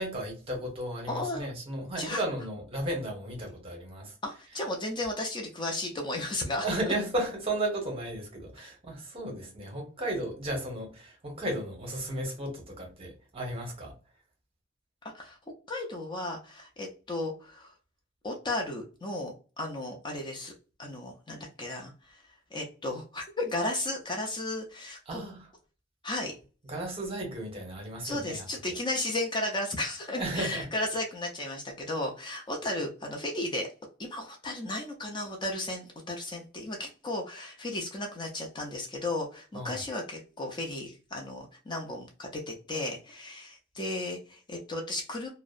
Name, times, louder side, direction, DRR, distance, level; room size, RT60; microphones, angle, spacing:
voice 1, 0.0-4.1 6.6-14.0 25.1-25.5 26.6-28.5 30.1-30.7 39.5-39.8, right 1 dB, 30° right, 0.9 m, -34 dB
voice 2, 1.1-1.5 2.0-2.2 4.2-6.7 15.1-15.4 15.7-17.7 18.2-20.5 20.8-22.2 22.5-25.2 26.0-26.4 28.0-33.7 34.0-45.3, left 2 dB, 25° left, 0.4 m, -34 dB
2.7 x 2.0 x 2.4 m
head